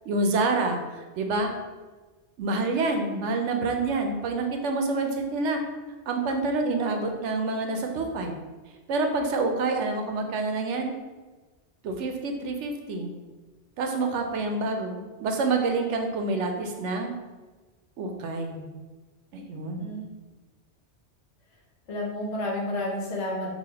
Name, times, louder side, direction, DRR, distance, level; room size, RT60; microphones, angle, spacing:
voice 1, 0.1-1.5 2.4-5.6 6.1-8.4 8.9-10.9 11.8-13.1 13.8-17.1 18.0-18.7 19.3-19.9, right 3 dB, 85° right, 4 dB, 0.9 m, -27 dB
voice 2, 21.9-23.5, left 1 dB, 75° left, -2 dB, 1.2 m, -30 dB
5.6 x 2.5 x 2.8 m, 1.3 s
omnidirectional pair, 1.2 m